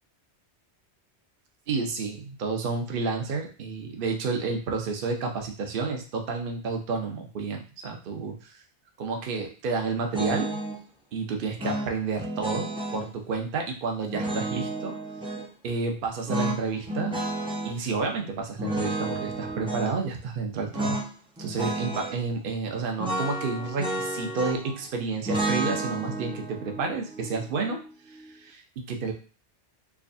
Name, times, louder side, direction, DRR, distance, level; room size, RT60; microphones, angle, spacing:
voice 1, 1.7-8.3 9.0-10.6 11.1-14.9 15.6-17.1 17.6-21.0 21.4-27.8 28.1-29.1, right 4 dB, 55° right, 2 dB, 0.8 m, -30 dB
sound 1, 10.1-10.8 11.6-13.1 14.1-15.5 16.3-17.8 18.6-19.9 20.7-21.1 21.4-22.2 23.0-24.8 25.3-28.3, right 1 dB, 5° right, 0.5 m, -31 dB
4.7 x 2.2 x 2.6 m, 0.36 s
omnidirectional pair, 1.2 m